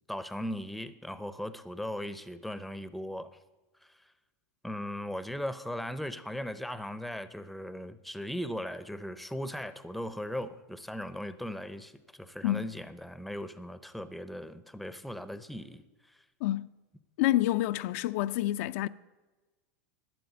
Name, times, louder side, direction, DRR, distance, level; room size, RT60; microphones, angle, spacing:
voice 1, 0.1-3.3 3.8-4.0 4.6-16.2, equal, ahead, 0.6 m, -38 dB
voice 2, 16.4-16.7 17.2-18.9, left 15 dB, 60° left, 0.4 m, -28 dB
12.0 x 7.6 x 9.5 m
supercardioid pair, 150°, 8 cm